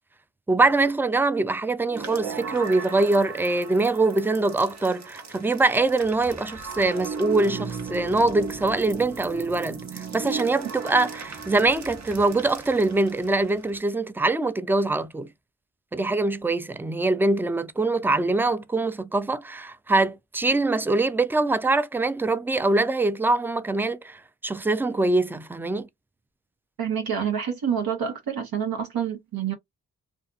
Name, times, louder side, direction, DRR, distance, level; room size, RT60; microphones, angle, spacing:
voice 1, 0.5-15.3 15.9-25.9, right 2 dB, 5° right, 0.3 m, -23 dB
ab rain atmos, 1.9-13.8, right 5 dB, 50° right, 1.0 m, -36 dB
voice 2, 26.8-29.5, right 8 dB, 70° right, 0.9 m, -27 dB
2.5 x 2.4 x 2.4 m
cardioid pair, 50°, 37 cm